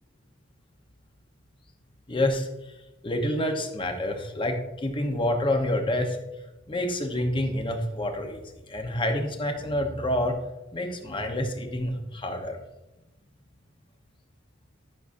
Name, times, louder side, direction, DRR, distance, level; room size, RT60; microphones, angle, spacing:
voice 1, 2.1-2.5 3.0-6.2 6.7-8.4 8.7-10.4 10.7-12.6, left 1 dB, 25° left, 4 dB, 0.8 m, -28 dB
11.0 x 6.1 x 2.6 m, 0.99 s
head